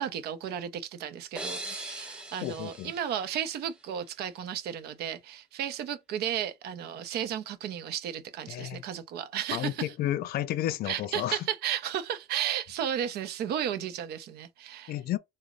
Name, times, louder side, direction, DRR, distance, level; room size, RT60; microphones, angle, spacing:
voice 1, 0.0-9.9 10.8-15.0, right 10 dB, 70° right, 0.5 m, -34 dB
voice 2, 1.4-1.7 2.4-2.9 8.5-8.8 9.5-11.4 14.9-15.2, left 13 dB, 65° left, 0.4 m, -32 dB
sound 1, 1.4-4.1, right 1 dB, 5° right, 0.5 m, -41 dB
2.9 x 2.1 x 3.7 m
cardioid pair, 110°, 17 cm